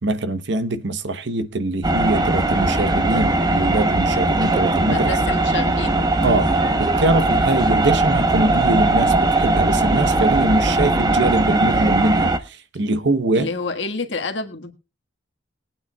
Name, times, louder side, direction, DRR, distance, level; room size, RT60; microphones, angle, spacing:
voice 1, 0.0-5.1 6.2-6.5 6.8-13.5, right 2 dB, 65° right, 0.9 m, -22 dB
sound 1, 1.8-12.4, right 2 dB, 20° right, 0.9 m, -19 dB
voice 2, 4.9-6.0 13.3-14.7, left 3 dB, 65° left, 1.6 m, -28 dB
21.5 x 8.8 x 2.3 m
head